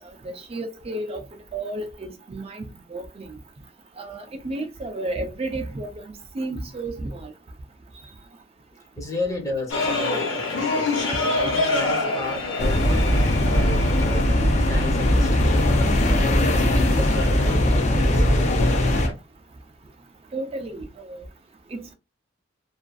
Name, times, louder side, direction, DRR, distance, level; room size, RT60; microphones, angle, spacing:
voice 1, 0.2-1.3 1.5-2.7 2.9-3.3 4.0-6.0 6.3-7.3 20.3-21.2 21.7-21.9, right 2 dB, 30° right, 0.4 m, -32 dB
voice 2, 9.0-15.6 16.0-18.9, left 1 dB, 15° left, 0.8 m, -33 dB
sound 1, 9.7-19.1, left 3 dB, 70° left, 1.0 m, -28 dB
sound 2, 12.6-19.1, left 1 dB, 35° left, 0.4 m, -20 dB
2.4 x 2.3 x 2.3 m
head